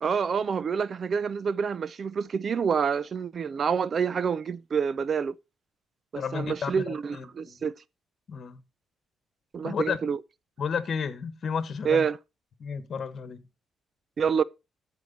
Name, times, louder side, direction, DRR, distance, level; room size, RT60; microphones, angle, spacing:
voice 1, 0.0-5.3 6.1-7.7 9.5-10.2 11.8-12.2 14.2-14.4, right 6 dB, 50° right, 0.4 m, -27 dB
voice 2, 6.1-7.6 8.3-8.6 9.6-10.0 10.6-12.0 12.6-13.4, left 6 dB, 50° left, 1.2 m, -32 dB
13.5 x 4.7 x 4.0 m
cardioid pair, 90°, 0 cm